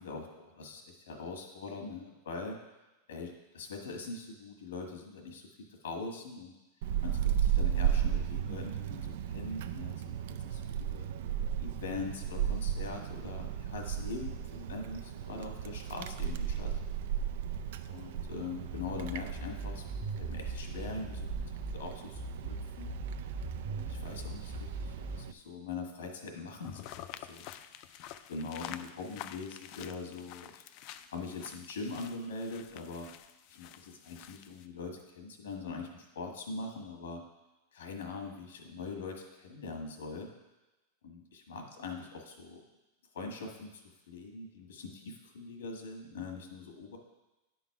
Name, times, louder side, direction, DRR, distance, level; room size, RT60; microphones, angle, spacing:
voice 1, 0.0-2.6 3.1-6.6 7.0-10.1 10.4-11.1 11.6-16.7 17.9-19.8 20.1-23.0 23.7-27.4 28.3-30.6 31.1-33.1 33.5-37.2 37.7-40.3 41.0-42.6 43.1-47.0, left 4 dB, 90° left, 2 dB, 1.5 m, -42 dB
Wind, 6.8-25.3, right 9 dB, 70° right, 0.4 m, -35 dB
sound 1, 18.7-21.7 22.1-25.2, right 1 dB, 20° right, 0.6 m, -41 dB
sound 2, 26.6-34.7, left 12 dB, 50° left, 0.4 m, -48 dB
10.0 x 3.9 x 4.8 m, 1.1 s
supercardioid pair, 135°, 0 cm